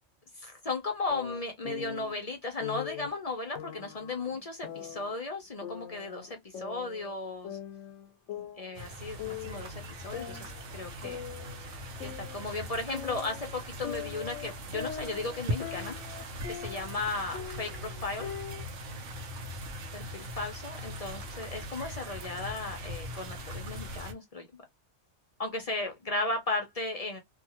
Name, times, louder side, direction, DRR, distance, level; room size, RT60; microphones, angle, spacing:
voice 1, 0.4-7.6 8.4-11.2 12.0-16.0 16.5-18.3 19.9-24.5 25.4-27.2, left 3 dB, 45° left, 0.5 m, -36 dB
sound 1, 1.1-2.1 2.6-3.1 3.6-5.2 5.6-7.2 7.4-8.9 9.2-9.7 10.1-12.6 12.9-17.0 17.3-18.7, left 10 dB, 90° left, 0.9 m, -42 dB
sound 2, 8.7-24.1, equal, 90° right, 1.1 m, -40 dB
2.7 x 2.4 x 2.8 m
omnidirectional pair, 1.2 m